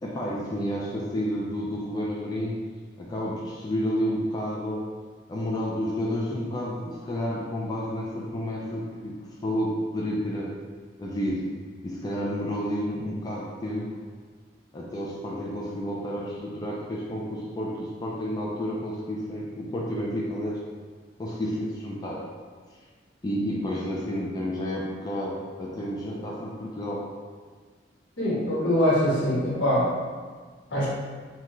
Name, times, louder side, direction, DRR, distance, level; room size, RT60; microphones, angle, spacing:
voice 1, 0.0-2.6 3.0-4.9 5.3-10.6 11.0-11.5 11.8-14.0 14.7-20.6 21.2-22.2 23.2-27.0, equal, 20° left, -4 dB, 0.3 m, -30 dB
voice 2, 28.2-29.9 30.7-30.9, equal, 75° left, -7 dB, 1.1 m, -23 dB
3.6 x 2.2 x 3.0 m, 1.5 s
head